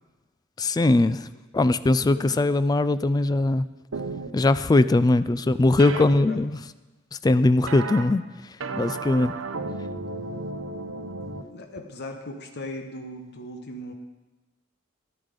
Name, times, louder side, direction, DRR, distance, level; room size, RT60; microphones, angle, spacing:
voice 1, 0.6-1.3 1.5-3.7 4.3-6.6 7.2-8.3 8.8-9.3, left 2 dB, 20° left, 14 dB, 0.3 m, -20 dB
voice 2, 2.0-2.6 5.9-6.7 11.5-13.9, left 1 dB, 55° left, 5 dB, 1.1 m, -39 dB
sound 1, 3.9-4.3 5.8-6.0 7.7-8.0 8.6-11.4, right 3 dB, 70° right, 0.8 m, -33 dB
11.5 x 10.0 x 5.2 m, 1.1 s
head